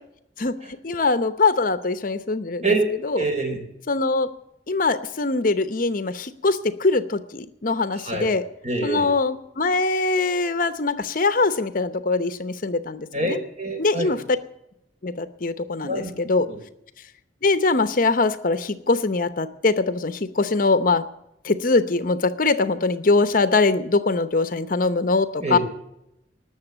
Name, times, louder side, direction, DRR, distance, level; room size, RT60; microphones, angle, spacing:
voice 1, 0.8-2.6 3.0-3.2 3.9-4.3 4.7-8.4 8.8-13.4 13.8-14.2 15.0-16.5 17.4-21.0 21.4-25.6, left 3 dB, 50° left, 12 dB, 0.8 m, -22 dB
voice 2, 3.1-3.6 7.9-8.4 8.6-9.1 13.1-14.2 15.8-16.1 16.4-16.6 25.4-25.6, right 2 dB, 40° right, 4 dB, 4.2 m, -26 dB
19.0 x 7.0 x 7.9 m, 0.82 s
head